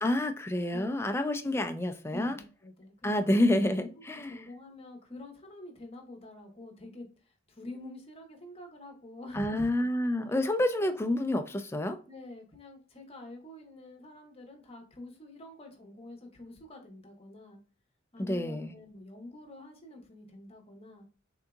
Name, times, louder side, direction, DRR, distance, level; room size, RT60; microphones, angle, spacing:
voice 1, 0.0-2.4 3.0-4.4 9.3-12.0 18.2-18.7, left 1 dB, 15° left, 7 dB, 0.4 m, -28 dB
voice 2, 2.1-3.5 4.0-7.1 7.5-9.9 12.1-17.6 18.1-21.1, left 2 dB, 30° left, 3 dB, 0.9 m, -46 dB
3.7 x 2.7 x 2.3 m, 0.36 s
head